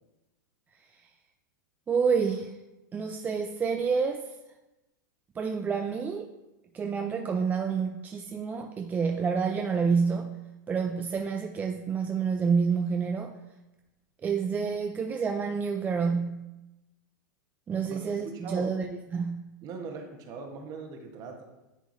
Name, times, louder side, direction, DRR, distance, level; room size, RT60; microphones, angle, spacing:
voice 1, 1.9-2.5 2.9-4.2 5.4-6.3 6.7-10.3 10.7-13.3 14.2-16.4 17.7-18.9 19.1-19.5, right 5 dB, 15° right, 4 dB, 0.3 m, -28 dB
voice 2, 18.2-18.8 19.6-21.4, right 4 dB, 35° right, 3 dB, 1.1 m, -40 dB
10.0 x 3.7 x 2.6 m, 1.0 s
hypercardioid pair, 120°, 10 cm